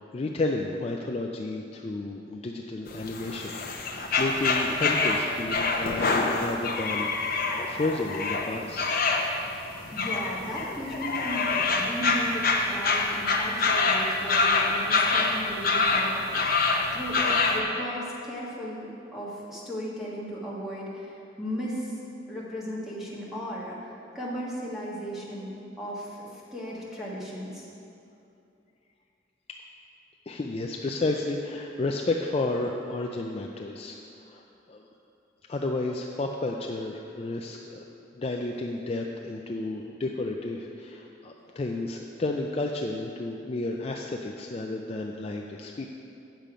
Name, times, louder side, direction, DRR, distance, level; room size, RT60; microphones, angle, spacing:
voice 1, 0.0-9.0 30.3-34.0 34.2-34.9 35.5-37.8 38.1-45.8, left 2 dB, 30° left, 1 dB, 0.4 m, -32 dB
sound 1, 2.9-17.6, left 3 dB, 50° left, 0.7 m, -26 dB
voice 2, 9.9-22.0 22.3-27.7, equal, ahead, -6 dB, 1.5 m, -36 dB
9.0 x 6.8 x 5.0 m, 2.6 s
head